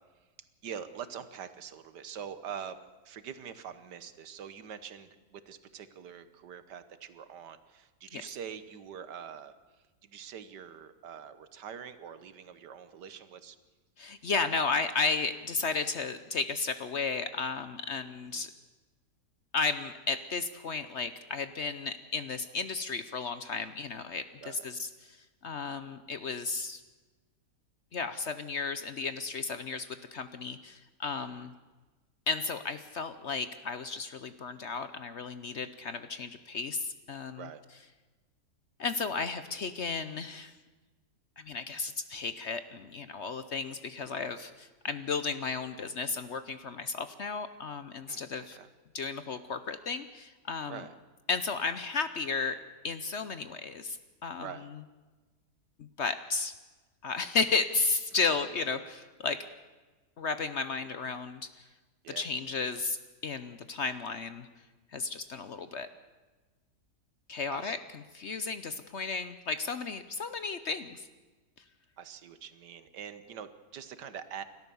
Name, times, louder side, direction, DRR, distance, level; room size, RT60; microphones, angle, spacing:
voice 1, 0.6-2.8 3.0-13.6 18.3-18.5 24.4-24.6 31.2-31.5 37.3-37.6 48.1-48.7 50.7-50.9 54.4-54.7 62.0-62.3 67.5-67.7 72.0-74.4, right 8 dB, 80° right, 12 dB, 1.7 m, -44 dB
voice 2, 14.0-18.5 19.5-26.8 27.9-31.5 32.3-37.5 38.8-40.5 41.4-48.6 48.9-50.8 51.3-54.5 55.8-56.5 57.0-59.4 60.2-61.7 62.2-63.0 63.2-64.5 64.9-65.9 67.3-67.8 68.1-71.1, left 4 dB, 55° left, 11 dB, 0.9 m, -34 dB
29.0 x 13.0 x 7.0 m, 1.3 s
omnidirectional pair, 1.8 m